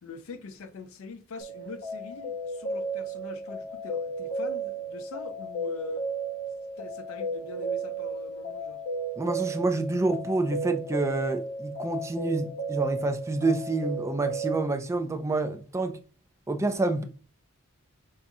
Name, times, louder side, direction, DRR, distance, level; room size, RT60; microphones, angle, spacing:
voice 1, 0.0-6.1 6.8-8.8, left 4 dB, 70° left, 0.5 m, -43 dB
sound 1, 1.4-14.6, right 3 dB, 50° left, 0.8 m, -34 dB
voice 2, 9.2-16.0 16.5-17.1, right 2 dB, 15° right, 0.3 m, -28 dB
5.4 x 2.3 x 2.6 m
head